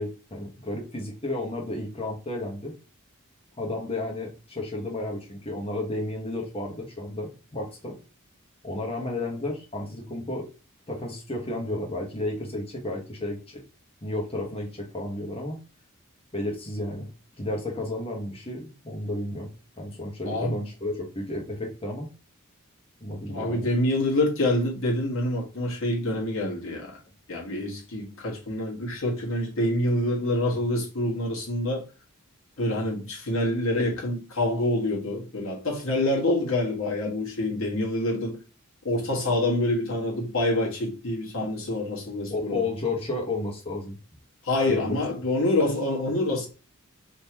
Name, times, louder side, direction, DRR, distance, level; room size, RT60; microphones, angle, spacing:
voice 1, 0.0-2.7 3.6-8.0 8.6-10.5 10.9-13.6 14.0-15.6 16.3-17.1 17.4-19.5 19.8-22.1 23.0-23.7 42.3-44.0 44.7-45.0, left 2 dB, 30° left, 1.2 m, -32 dB
voice 2, 20.2-20.6 23.3-27.0 27.3-31.8 32.6-38.4 38.8-42.6 44.4-46.5, left 1 dB, 65° left, 1.5 m, -26 dB
3.6 x 3.0 x 2.9 m
head